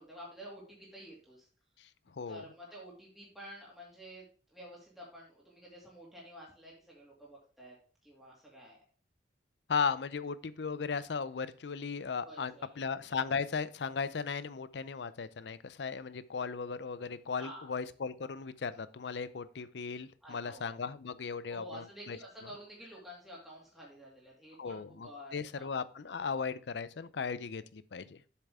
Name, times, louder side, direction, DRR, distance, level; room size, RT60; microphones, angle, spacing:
voice 1, 0.0-1.5 2.3-4.3 4.5-7.8 8.0-8.8 12.2-12.8 17.4-17.7 20.2-20.7 21.5-25.7, equal, ahead, -5 dB, 2.5 m, -50 dB
voice 2, 1.8-2.4 9.7-22.2 24.6-28.2, left 5 dB, 80° left, 16 dB, 0.5 m, -37 dB
7.7 x 6.7 x 3.6 m, 0.40 s
head